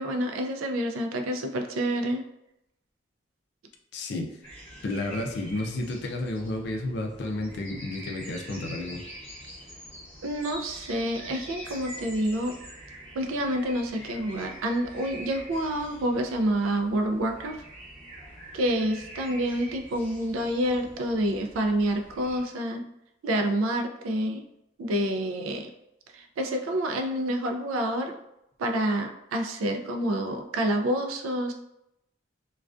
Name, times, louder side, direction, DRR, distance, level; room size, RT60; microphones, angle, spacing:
voice 1, 0.0-2.2 10.2-12.6 13.1-17.6 18.5-22.8 23.2-24.4 24.8-25.7 26.1-28.2 28.6-31.5, right 1 dB, 90° right, 4 dB, 0.4 m, -28 dB
voice 2, 3.9-4.3 4.8-9.0, left 2 dB, 55° left, 2 dB, 0.4 m, -31 dB
sound 1, 4.4-22.4, equal, 10° left, 0.7 m, -45 dB
2.3 x 2.2 x 2.4 m, 0.84 s
head